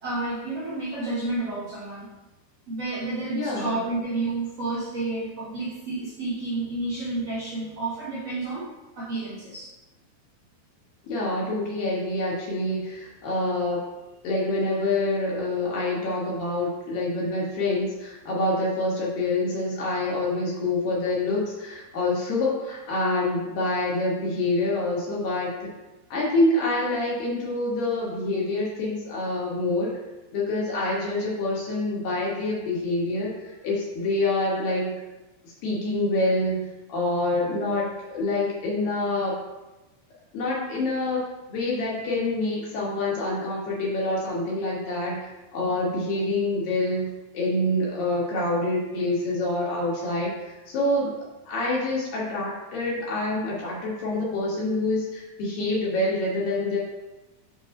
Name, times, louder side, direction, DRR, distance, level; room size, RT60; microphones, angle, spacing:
voice 1, 0.0-2.1 2.7-8.7 9.0-9.7, right 2 dB, 65° right, -10 dB, 1.5 m, -30 dB
voice 2, 3.3-3.8 11.0-13.9 14.2-25.7 26.1-30.0 30.3-35.0 35.6-39.4 40.3-41.2 41.5-51.2 51.5-56.8, left 2 dB, 70° left, -4 dB, 2.5 m, -26 dB
6.6 x 3.0 x 5.1 m, 1.1 s
omnidirectional pair, 4.8 m